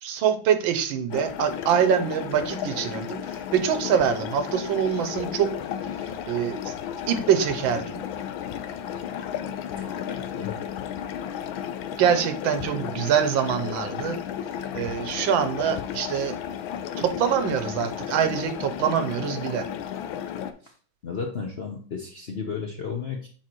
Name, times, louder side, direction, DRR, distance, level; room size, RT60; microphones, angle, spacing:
voice 1, 0.0-5.5 6.3-6.7 7.1-8.0 12.0-14.2 14.7-16.3 17.0-19.7, right 8 dB, 85° right, 9 dB, 1.5 m, -24 dB
sound 1, 1.1-20.5, left 9 dB, 90° left, 1.4 m, -33 dB
voice 2, 9.7-10.6 20.6-20.7 21.0-23.3, left 5 dB, 55° left, 1 dB, 0.7 m, -34 dB
7.4 x 4.5 x 3.0 m, 0.41 s
omnidirectional pair, 2.1 m